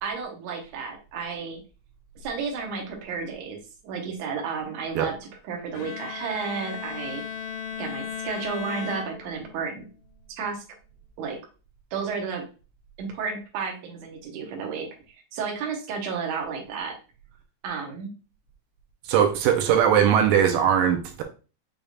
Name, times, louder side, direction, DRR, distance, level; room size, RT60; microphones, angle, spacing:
voice 1, 0.0-1.6 2.2-5.2 5.4-7.2 7.8-9.8 10.4-10.6 11.2-11.4 11.9-12.5 13.0-14.9 15.3-17.0 17.6-18.1, right 5 dB, 65° right, 1 dB, 2.0 m, -32 dB
Bowed string instrument, 5.7-9.8, left 7 dB, 75° left, 1.6 m, -36 dB
voice 2, 19.1-21.2, right 8 dB, 85° right, 5 dB, 2.3 m, -20 dB
6.6 x 3.4 x 2.4 m, 0.34 s
omnidirectional pair, 3.9 m